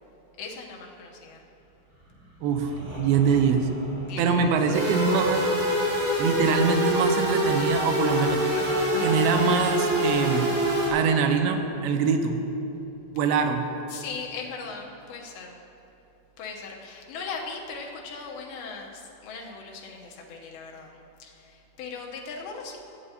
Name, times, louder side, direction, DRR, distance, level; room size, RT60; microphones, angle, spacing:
voice 1, 0.4-1.4 4.0-4.9 13.9-15.6 16.4-22.8, left 4 dB, 85° left, -1 dB, 2.8 m, -39 dB
sound 1, 1.9-7.6, right 1 dB, 40° right, 1.4 m, -43 dB
voice 2, 3.0-3.7 4.2-5.4 6.2-8.5 9.0-10.5 10.9-12.4 13.1-13.7, right 6 dB, 90° right, 6 dB, 2.6 m, -23 dB
sound 2, 4.7-11.0 11.4-11.5, left 2 dB, 60° left, 2.2 m, -39 dB
sound 3, 4.7-10.9, equal, 65° right, 4.1 m, -25 dB
15.0 x 8.8 x 2.8 m, 2.9 s
omnidirectional pair, 4.3 m